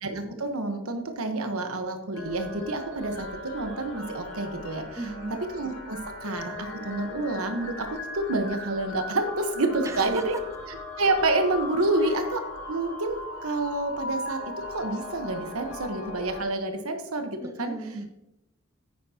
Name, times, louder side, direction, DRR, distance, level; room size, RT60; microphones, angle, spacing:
voice 1, 0.0-5.0 5.5-10.3 11.0-12.4 12.7-14.4 14.7-17.7, right 2 dB, 90° right, 6 dB, 1.2 m, -28 dB
sound 1, 2.1-16.4, left 2 dB, 90° left, 1.4 m, -38 dB
voice 2, 5.0-5.4 9.8-10.2 12.0-12.3 17.4-18.1, right 2 dB, 15° right, 6 dB, 0.5 m, -36 dB
9.3 x 9.1 x 2.9 m, 0.90 s
head